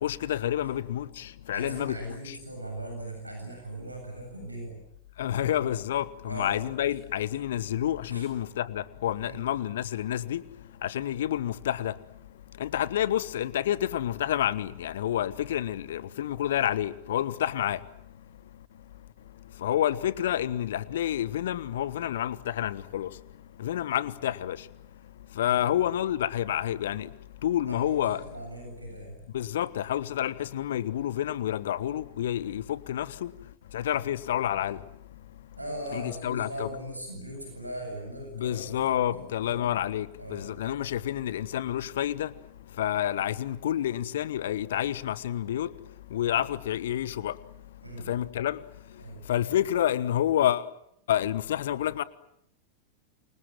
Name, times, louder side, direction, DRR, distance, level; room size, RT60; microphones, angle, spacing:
voice 1, 0.0-2.4 5.2-10.4 10.8-11.9 12.6-17.8 19.6-23.1 23.6-24.7 25.4-27.1 27.4-28.2 29.3-33.3 33.7-34.8 35.9-36.7 38.3-42.3 42.8-45.7 46.1-47.4 48.1-48.6 49.3-50.6 51.1-52.0, left 11 dB, 60° left, 1.3 m, -29 dB
voice 2, 1.5-4.8 5.3-5.6 6.3-6.7 8.1-8.2 9.2-9.4 25.5-25.8 27.7-29.2 35.6-39.7 40.2-40.6 47.8-48.1 49.0-49.2, right 1 dB, 85° right, 7.8 m, -40 dB
28.5 x 25.0 x 7.6 m
figure-of-eight pair, 90°, 0 cm